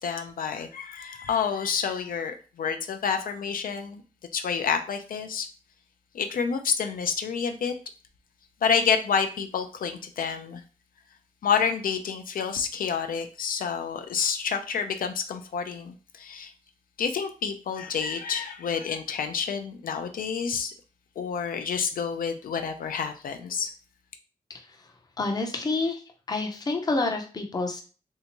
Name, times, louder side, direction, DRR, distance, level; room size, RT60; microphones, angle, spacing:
voice 1, 0.0-4.0 4.3-5.5 6.1-7.7 8.6-10.6 11.4-16.5 17.0-20.7 21.2-23.7, left 6 dB, 80° left, 6 dB, 0.4 m, -28 dB
voice 2, 25.2-26.0 26.3-27.8, left 3 dB, 25° left, 4 dB, 0.5 m, -28 dB
3.3 x 2.7 x 2.9 m, 0.36 s
wide cardioid pair, 165°, 14 cm